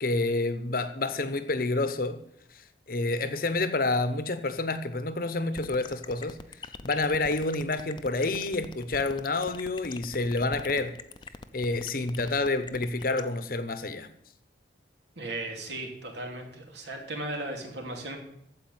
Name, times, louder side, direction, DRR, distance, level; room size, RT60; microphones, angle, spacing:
voice 1, 0.0-2.2 2.5-2.6 2.9-6.4 6.8-10.9 11.5-14.1, left 2 dB, 50° left, 0.9 m, -28 dB
sound 1, 5.6-13.2, left 4 dB, 25° left, 0.6 m, -41 dB
voice 2, 15.2-18.2, right 2 dB, 75° right, 2.8 m, -36 dB
15.0 x 5.0 x 9.2 m
head